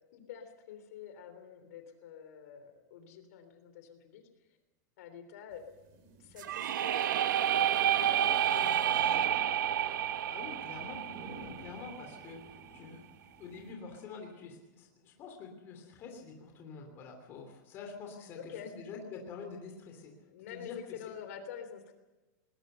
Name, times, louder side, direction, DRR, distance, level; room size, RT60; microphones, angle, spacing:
voice 1, 0.1-4.2 5.0-5.6 6.2-9.5 18.3-18.7 20.2-21.9, left 8 dB, 55° left, 8 dB, 3.4 m, -47 dB
sound 1, 5.5-13.7, right 2 dB, 30° right, 3.1 m, -54 dB
sound 2, 6.4-12.2, right 10 dB, 85° right, 1.3 m, -30 dB
voice 2, 10.3-13.0 13.4-20.8, left 5 dB, 25° left, 2 dB, 3.1 m, -47 dB
20.5 x 20.0 x 6.8 m, 1.1 s
supercardioid pair, 180°, 10 cm